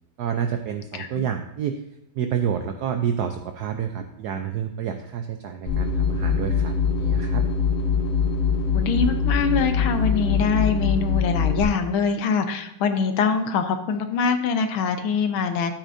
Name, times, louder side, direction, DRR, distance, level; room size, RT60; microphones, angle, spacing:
voice 1, 0.2-1.8 2.1-7.5, right 8 dB, 80° right, 6 dB, 0.9 m, -29 dB
sound 1, 5.7-11.6, left 5 dB, 50° left, 2.1 m, -23 dB
voice 2, 8.7-15.7, left 5 dB, 75° left, 7 dB, 1.6 m, -24 dB
11.5 x 8.8 x 2.6 m, 0.79 s
omnidirectional pair, 2.3 m